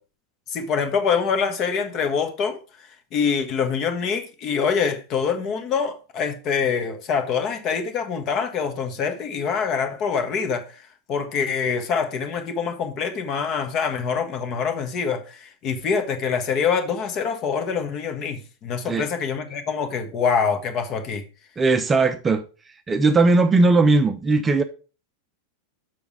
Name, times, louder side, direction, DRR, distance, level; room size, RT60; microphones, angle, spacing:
voice 1, 0.5-2.6 3.1-10.7 11.1-21.2, left 6 dB, 35° left, 1.5 m, -25 dB
voice 2, 21.6-22.4 22.9-24.6, right 3 dB, 15° right, 0.7 m, -18 dB
7.0 x 6.2 x 4.8 m
figure-of-eight pair, 90°, 0 cm